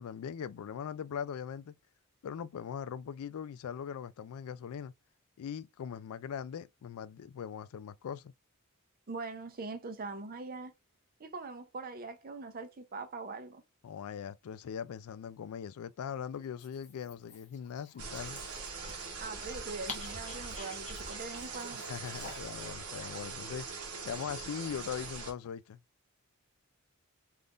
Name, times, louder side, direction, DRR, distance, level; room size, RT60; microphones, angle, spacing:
voice 1, 0.0-1.8 2.2-4.9 5.4-8.3 13.8-18.4 21.8-23.7 24.0-25.8, left 8 dB, 75° left, 0.3 m, -40 dB
voice 2, 9.1-10.7 11.2-13.6 19.2-21.9, right 3 dB, 40° right, 0.6 m, -42 dB
Dog, 16.4-22.7, left 4 dB, 30° left, 0.9 m, -50 dB
sound 1, 18.0-25.3, right 4 dB, 85° right, 1.0 m, -42 dB
3.5 x 2.5 x 2.4 m
head